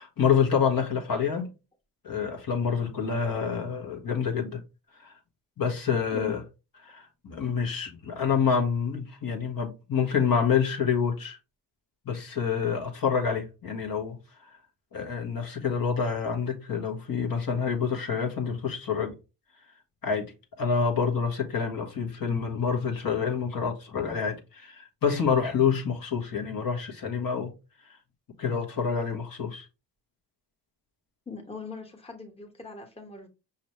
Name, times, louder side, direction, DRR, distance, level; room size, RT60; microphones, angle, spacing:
voice 1, 0.0-1.5 2.0-4.6 4.9-5.2 5.6-6.4 6.8-11.4 12.0-14.5 14.9-19.1 20.0-20.3 20.6-27.5 28.4-29.7, left 6 dB, 45° left, 1.4 m, -27 dB
voice 2, 31.3-33.3, left 4 dB, 15° left, 1.2 m, -40 dB
5.3 x 2.9 x 3.0 m
supercardioid pair, 60°, 46 cm